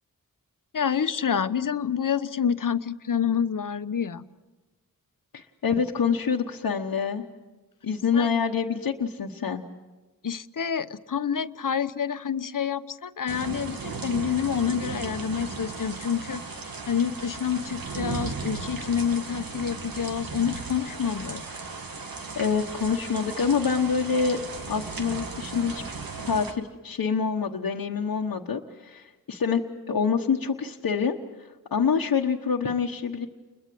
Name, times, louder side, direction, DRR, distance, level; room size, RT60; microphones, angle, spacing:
voice 1, 0.7-4.3 8.1-8.3 10.2-21.4, left 7 dB, 65° left, 12 dB, 1.0 m, -28 dB
voice 2, 5.3-7.2 7.8-9.6 22.3-24.4 24.7-25.8 26.3-29.6 29.9-31.2 31.7-33.3, left 6 dB, 90° left, -1 dB, 1.2 m, -26 dB
sound 1, 13.3-26.5, right 4 dB, 90° right, 2.0 m, -36 dB
29.5 x 22.0 x 7.7 m, 1.2 s
cardioid pair, 50°, 34 cm